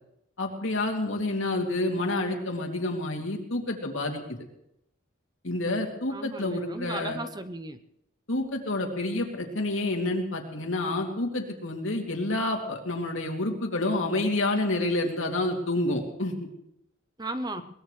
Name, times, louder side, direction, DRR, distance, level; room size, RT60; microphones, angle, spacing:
voice 1, 0.4-4.2 5.4-7.2 8.3-16.5, left 2 dB, 70° left, 1 dB, 2.7 m, -28 dB
voice 2, 6.1-7.8 17.2-17.6, right 2 dB, 20° right, 10 dB, 0.6 m, -35 dB
22.5 x 20.0 x 3.3 m, 0.79 s
head